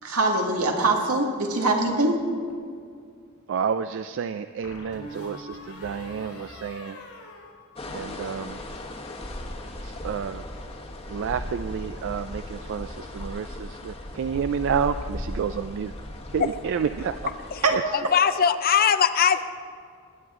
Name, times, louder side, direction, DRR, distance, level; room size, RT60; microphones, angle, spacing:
voice 1, 0.0-2.2 17.6-17.8, right 2 dB, 90° right, 1 dB, 1.8 m, -23 dB
sound 1, 1.9-2.7 4.6-8.1 8.4-8.9, left 1 dB, 80° left, 3.3 m, -44 dB
voice 2, 3.5-7.0 7.9-8.6 9.8-10.4 11.1-15.9 16.3-17.1 17.7-17.8, right 7 dB, 60° right, 11 dB, 0.3 m, -30 dB
sound 2, 7.8-17.7, left 1 dB, 25° left, 1.1 m, -37 dB
voice 3, 17.9-19.4, left 7 dB, 45° left, 12 dB, 0.5 m, -21 dB
20.0 x 9.6 x 3.7 m, 2.2 s
head